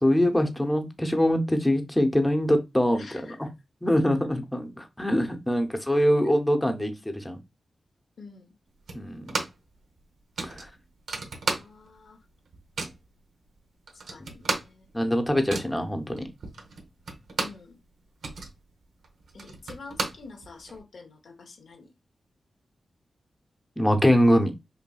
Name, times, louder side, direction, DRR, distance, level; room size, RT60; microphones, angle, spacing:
voice 1, 0.0-3.5 3.8-7.4 8.9-9.3 10.4-10.6 14.9-16.2 23.8-24.5, equal, 10° left, 0.8 m, -23 dB
voice 2, 2.9-3.5 8.2-8.5 11.4-12.2 14.1-14.9 17.4-17.8 19.3-21.9, left 4 dB, 80° left, 0.9 m, -47 dB
sound 1, 8.9-9.7 10.0-10.1 10.4-12.0 12.3-13.1 13.6-13.7 13.9-17.7 18.0-20.8, right 3 dB, 85° right, 0.8 m, -34 dB
5.4 x 2.6 x 2.3 m
cardioid pair, 60°, 0 cm